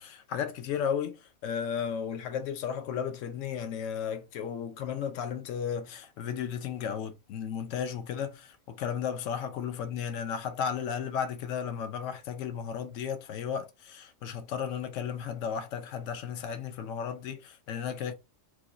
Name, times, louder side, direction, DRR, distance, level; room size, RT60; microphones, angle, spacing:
voice 1, 0.0-18.1, left 7 dB, 75° left, 0.9 m, -34 dB
3.1 x 2.2 x 3.7 m
omnidirectional pair, 1.4 m